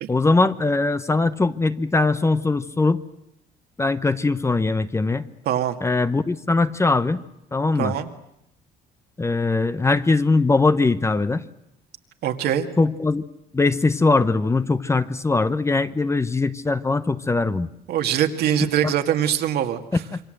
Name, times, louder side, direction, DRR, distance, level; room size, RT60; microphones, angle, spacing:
voice 1, 0.1-3.0 3.8-5.3 5.8-7.2 7.5-7.9 9.2-11.4 12.8-13.2 13.5-17.7 18.8-18.9 20.1-20.2, left 3 dB, 15° left, 13 dB, 0.9 m, -21 dB
voice 2, 5.5-5.8 7.8-8.1 12.2-12.7 17.9-20.0, right 10 dB, 70° right, 6 dB, 2.1 m, -23 dB
27.0 x 23.5 x 7.9 m, 0.80 s
cardioid pair, 110°, 17 cm